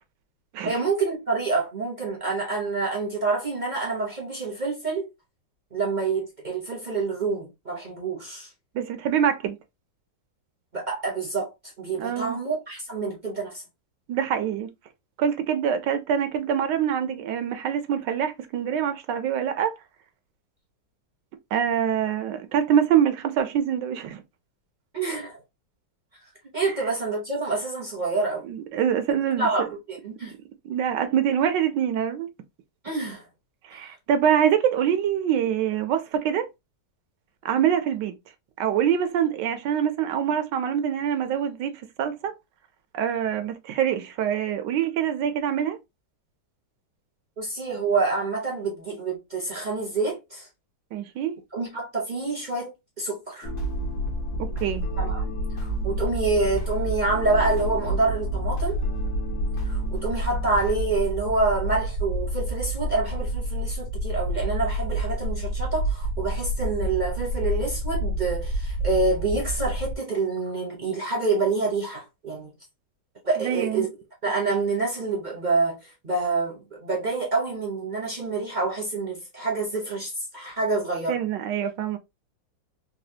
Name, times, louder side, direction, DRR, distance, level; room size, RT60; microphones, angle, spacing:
voice 1, 0.6-5.1 5.7-8.5 10.7-11.5 11.8-13.6 24.9-25.4 26.5-28.5 29.4-30.3 32.8-33.2 33.7-33.9 47.4-50.5 51.5-53.5 55.0-55.2 55.6-58.8 59.6-72.5 73.2-73.9 74.2-81.2, right 3 dB, 45° right, 0.6 m, -27 dB
voice 2, 8.7-9.6 12.0-12.4 14.1-14.7 15.2-19.7 21.5-24.2 28.5-29.5 30.6-32.3 33.7-36.5 37.4-38.2 38.6-42.3 42.9-45.8 50.9-51.3 54.4-54.9 73.4-73.9 81.1-82.0, right 9 dB, 75° right, 1.2 m, -25 dB
sound 1, 53.4-70.0, right 1 dB, 75° left, 1.3 m, -29 dB
sound 2, 53.4-60.9, left 1 dB, 55° left, 1.1 m, -39 dB
4.1 x 2.2 x 2.7 m
omnidirectional pair, 2.0 m